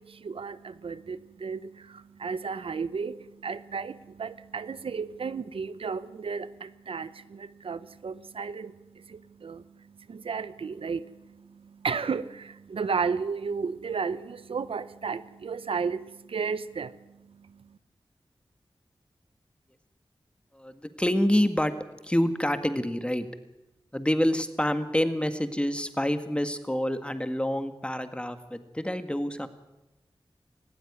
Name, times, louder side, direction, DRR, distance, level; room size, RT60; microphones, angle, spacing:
voice 1, 0.0-17.8, right 5 dB, 80° right, 15 dB, 0.7 m, -34 dB
voice 2, 20.5-21.7 22.0-23.3 23.9-29.5, left 1 dB, 10° left, 9 dB, 1.8 m, -27 dB
18.5 x 15.5 x 9.6 m, 1.0 s
cardioid pair, 50°, 9 cm